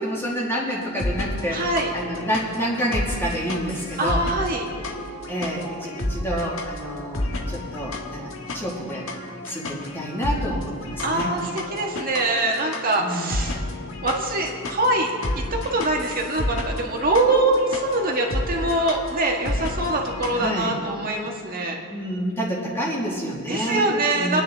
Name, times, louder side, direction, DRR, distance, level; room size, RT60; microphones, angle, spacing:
voice 1, 0.0-1.6 1.9-4.2 5.3-9.1 9.5-11.4 13.0-13.6 20.3-20.7 21.9-24.4, equal, 10° left, -4 dB, 2.1 m, -28 dB
sound 1, 0.8-20.5, left 1 dB, 70° left, 1.5 m, -31 dB
voice 2, 1.5-1.9 4.0-4.7 11.0-13.6 14.0-15.1 15.5-21.8 23.5-24.4, right 2 dB, 45° right, 0 dB, 1.9 m, -23 dB
25.0 x 9.7 x 3.7 m, 2.1 s
head